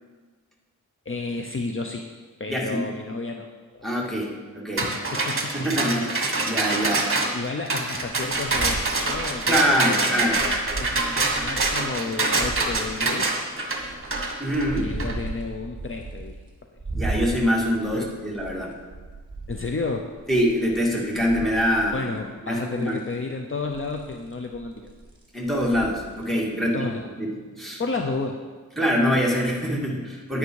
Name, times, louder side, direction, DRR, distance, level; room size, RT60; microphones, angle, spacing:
voice 1, 1.1-2.1 2.4-3.5 3.7-3.9 4.8-5.7 7.3-13.3 14.7-16.4 17.9-18.2 19.5-20.1 21.9-24.9 26.6-27.0 27.8-28.4, left 3 dB, 40° left, 4 dB, 0.7 m, -32 dB
voice 2, 2.5-2.8 3.8-4.9 5.5-7.1 9.5-10.4 14.4-14.9 16.9-18.7 20.3-22.1 22.4-23.0 25.3-26.9 27.2-27.3 27.6-27.8 28.8-30.4, equal, ahead, -3 dB, 2.3 m, -24 dB
sound 1, 4.8-15.1, right 2 dB, 40° right, 1.6 m, -25 dB
sound 2, 8.1-12.0 12.3-13.1 13.7-16.5 16.8-22.3 22.7-23.1 23.6-26.4, right 3 dB, 15° right, 2.6 m, -36 dB
10.0 x 9.6 x 4.7 m, 1.4 s
wide cardioid pair, 95°, 33 cm